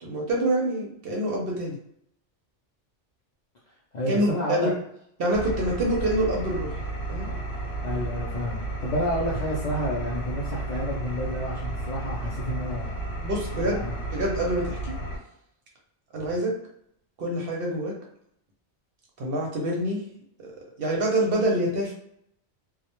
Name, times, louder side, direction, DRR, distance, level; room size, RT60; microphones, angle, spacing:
voice 1, 0.0-1.8 4.1-4.7 5.2-6.8 7.1-7.3 13.2-13.9 14.1-14.9 16.1-16.5 17.2-17.9 19.2-20.0 20.4-20.5 20.8-21.9, right 1 dB, 60° right, -1 dB, 0.7 m, -26 dB
voice 2, 3.9-4.7 7.8-12.9 13.6-14.0, left 1 dB, 60° left, -5 dB, 0.4 m, -30 dB
Engine, 5.3-15.2, right 2 dB, 85° left, 0.9 m, -32 dB
2.1 x 2.1 x 2.9 m, 0.73 s
omnidirectional pair, 1.2 m